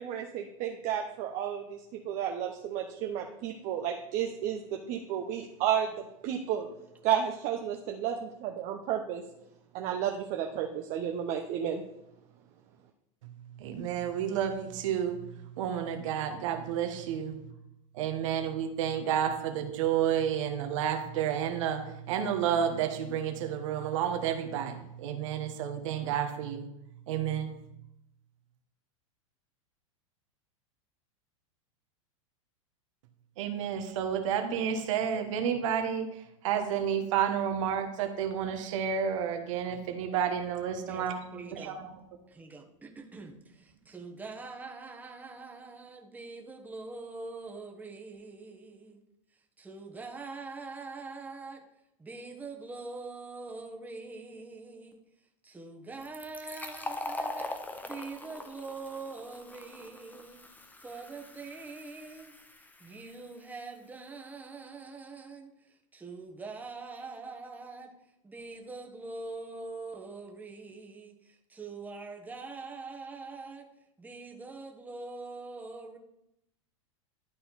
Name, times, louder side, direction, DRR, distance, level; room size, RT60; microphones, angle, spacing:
voice 1, 0.0-6.7 7.0-9.2 9.7-11.8, right 9 dB, 45° right, 3 dB, 0.8 m, -32 dB
voice 2, 13.6-17.4 17.9-26.7 27.1-27.5 33.4-41.9, right 8 dB, 65° right, 6 dB, 1.2 m, -31 dB
voice 3, 40.9-41.8 42.3-49.0 49.6-51.6 52.0-55.0 55.4-57.5 57.8-60.4 60.8-67.9 68.2-73.7 74.0-76.0, right 3 dB, 10° right, 1 dB, 1.2 m, -44 dB
Fill (with liquid), 56.0-63.4, left 2 dB, 10° left, 0.8 m, -42 dB
11.5 x 4.2 x 4.1 m, 0.82 s
hypercardioid pair, 110°, 17 cm